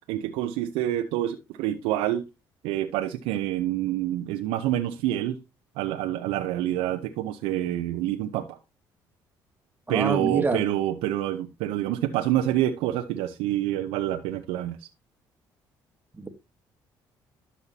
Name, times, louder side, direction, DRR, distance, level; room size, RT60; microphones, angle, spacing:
voice 1, 0.1-2.2 2.6-5.4 5.8-8.6 9.9-14.9, right 13 dB, 90° right, 0.7 m, -27 dB
voice 2, 9.9-10.6 16.2-16.3, right 3 dB, 20° right, 1.5 m, -26 dB
12.5 x 5.6 x 2.8 m
supercardioid pair, 80°, 9 cm